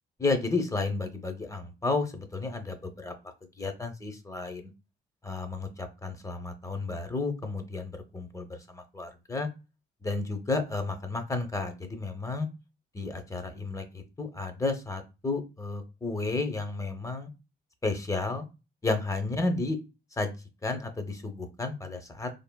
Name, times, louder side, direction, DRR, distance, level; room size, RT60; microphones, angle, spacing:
voice 1, 0.2-3.1 3.6-4.6 5.2-9.5 10.0-12.5 12.9-17.3 17.8-18.4 18.8-19.8 20.2-20.3 20.6-22.3, left 3 dB, 15° left, 7 dB, 0.7 m, -32 dB
3.3 x 2.1 x 2.2 m, 0.28 s
cardioid pair, 90°, 20 cm